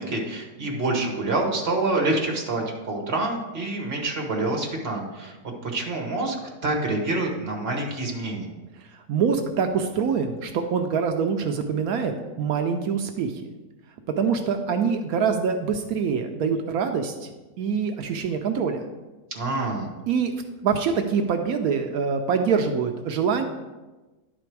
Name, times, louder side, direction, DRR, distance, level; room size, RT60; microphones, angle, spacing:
voice 1, 0.0-5.3 5.6-6.4 6.6-8.5 19.3-19.9, right 2 dB, 45° right, 0 dB, 1.5 m, -27 dB
voice 2, 8.9-13.5 14.1-17.3 17.6-18.8 20.1-20.4 20.6-23.4, right 6 dB, 75° right, 6 dB, 1.1 m, -25 dB
10.5 x 4.2 x 4.6 m, 1.2 s
omnidirectional pair, 1.6 m